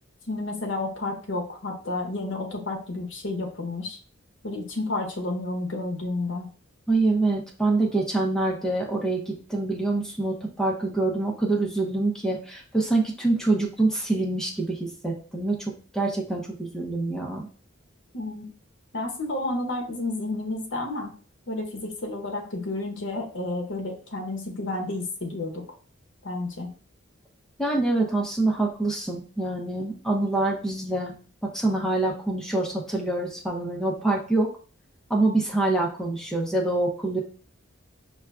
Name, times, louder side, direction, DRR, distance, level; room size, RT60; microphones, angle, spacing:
voice 1, 0.3-4.0 4.4-6.5 18.1-18.5 18.9-21.1 21.5-25.6 26.2-26.7, left 2 dB, 60° left, 1 dB, 0.8 m, -31 dB
voice 2, 6.9-17.4 27.6-31.2 31.4-34.5 35.1-37.2, right 2 dB, 5° left, -1 dB, 0.6 m, -25 dB
5.4 x 2.3 x 2.3 m, 0.41 s
head